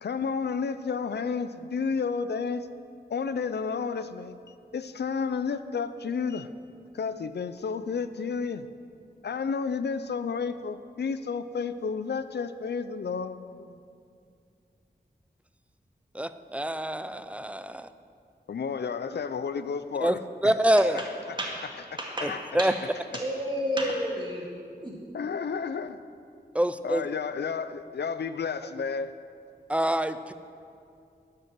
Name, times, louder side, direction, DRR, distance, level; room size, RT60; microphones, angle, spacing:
voice 1, 0.0-2.7 3.1-4.4 4.7-6.5 6.9-8.7 9.2-13.8 18.5-20.5 20.9-21.4 22.3-22.4 25.1-26.0 26.8-29.2, left 5 dB, 75° left, 12 dB, 0.5 m, -31 dB
voice 2, 16.1-17.9 20.0-20.2 20.4-21.0 22.2-22.7 26.5-27.0 29.7-30.3, right 1 dB, 5° right, 11 dB, 0.4 m, -26 dB
voice 3, 22.0-22.3 22.6-22.7 23.1-24.4 24.8-24.9, equal, 25° right, -3 dB, 2.0 m, -30 dB
12.0 x 5.3 x 7.5 m, 2.4 s
wide cardioid pair, 70°, 17 cm